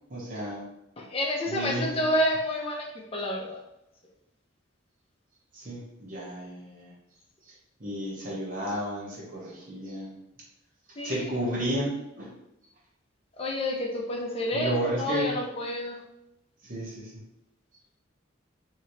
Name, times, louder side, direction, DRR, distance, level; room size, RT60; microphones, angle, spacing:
voice 1, 0.1-0.7 1.5-2.0 5.5-6.9 7.4-7.5 7.8-10.1 11.0-12.3 14.5-15.3 16.6-17.2, right 1 dB, 45° right, -5 dB, 1.1 m, -32 dB
voice 2, 1.0-3.6 11.0-11.3 13.4-16.0, left 1 dB, 30° left, -1 dB, 0.6 m, -29 dB
3.1 x 2.9 x 2.8 m, 0.87 s
head